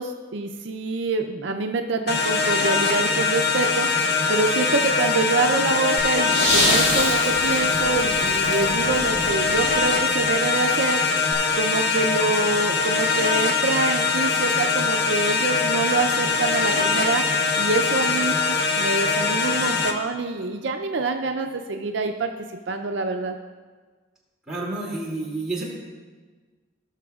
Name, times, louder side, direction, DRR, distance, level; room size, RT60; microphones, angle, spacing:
voice 1, 0.0-3.9 4.3-11.0 11.6-17.2 17.6-22.3 22.7-23.4, right 3 dB, 65° right, 5 dB, 0.4 m, -26 dB
sound 1, 2.1-19.9, left 4 dB, 55° left, 0.7 m, -22 dB
sound 2, 6.0-10.2 11.3-11.4, left 1 dB, 70° left, 1.6 m, -26 dB
voice 2, 24.5-25.6, right 2 dB, 5° right, -7 dB, 2.3 m, -29 dB
18.0 x 6.2 x 2.3 m, 1.4 s
head